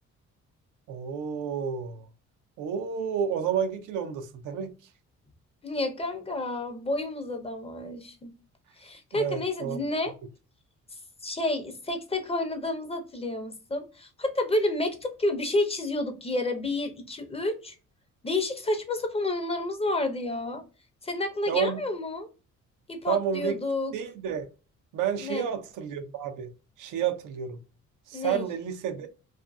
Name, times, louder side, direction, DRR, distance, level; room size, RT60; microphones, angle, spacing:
voice 1, 0.9-2.1 2.6-4.7 9.1-9.8 21.5-21.8 23.1-23.6 23.9-24.5 24.9-26.5 26.8-27.6 28.1-29.1, right 8 dB, 90° right, 0.5 m, -30 dB
voice 2, 5.6-8.3 8.8-10.1 11.2-17.8 18.2-20.6 21.0-22.3 22.9-23.9 25.2-25.5 28.1-28.5, left 2 dB, 20° left, 0.6 m, -30 dB
2.5 x 2.5 x 2.2 m
cardioid pair, 90°, 30 cm